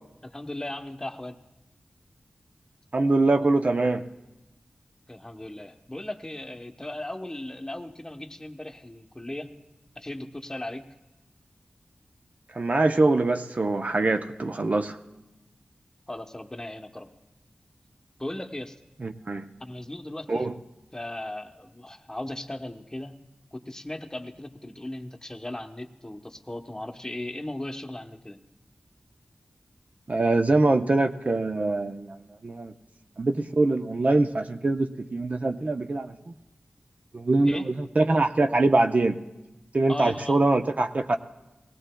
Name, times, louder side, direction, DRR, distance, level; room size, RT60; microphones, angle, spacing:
voice 1, 0.2-1.4 5.1-9.5 10.0-10.8 16.1-17.1 18.2-18.8 19.6-20.5 20.9-23.1 23.5-28.4 37.4-37.7 39.9-40.4, left 1 dB, 20° left, 5 dB, 0.8 m, -37 dB
voice 2, 2.9-4.0 12.5-15.0 19.0-19.5 20.3-20.5 30.1-32.2 32.4-32.7 33.2-36.3 37.1-39.1 39.7-41.2, right 2 dB, 50° right, 7 dB, 0.6 m, -23 dB
19.5 x 16.5 x 2.2 m, 1.0 s
cardioid pair, 45°, 3 cm